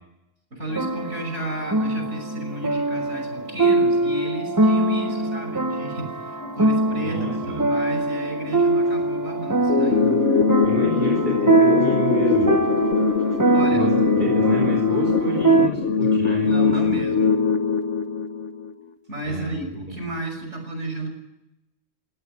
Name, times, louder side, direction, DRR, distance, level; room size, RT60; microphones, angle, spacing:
voice 1, 0.5-10.1 13.5-13.9 16.0-16.1 16.3-17.4 19.1-21.1, right 1 dB, 75° right, 4 dB, 6.3 m, -32 dB
sound 1, 0.7-15.7, right 2 dB, 20° right, 0.7 m, -23 dB
sound 2, 6.3-15.8, left 2 dB, 25° left, 2.8 m, -42 dB
voice 2, 7.1-7.6 10.6-12.5 13.7-16.5 16.8-17.0 19.2-19.6 19.9-20.0, right 2 dB, 50° right, 2 dB, 4.8 m, -30 dB
sound 3, 9.7-18.7, left 5 dB, 80° left, 1.5 m, -21 dB
20.5 x 17.5 x 9.9 m, 0.89 s
omnidirectional pair, 1.2 m